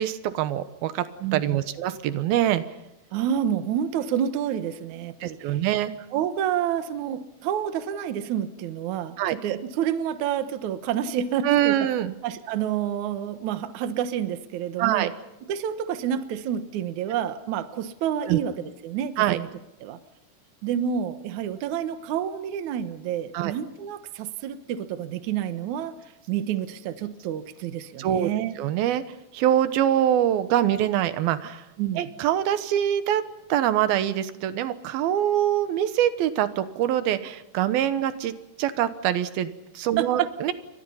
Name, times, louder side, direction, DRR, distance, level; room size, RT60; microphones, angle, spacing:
voice 1, 0.0-1.1 1.3-2.6 5.2-5.9 9.2-9.4 11.4-12.1 14.8-15.1 18.3-18.4 19.2-19.4 23.3-23.5 28.0-28.3 28.6-29.0 29.3-31.6 32.0-33.2 33.5-40.5, right 11 dB, 85° right, 12 dB, 2.9 m, -24 dB
voice 2, 1.2-1.6 3.1-5.6 6.1-11.9 12.2-15.1 15.5-19.5 19.8-20.0 20.6-25.9 26.3-28.6 31.8-32.0 40.0-40.3, right 9 dB, 65° right, 10 dB, 2.3 m, -29 dB
29.5 x 24.0 x 5.6 m, 0.89 s
omnidirectional pair, 4.2 m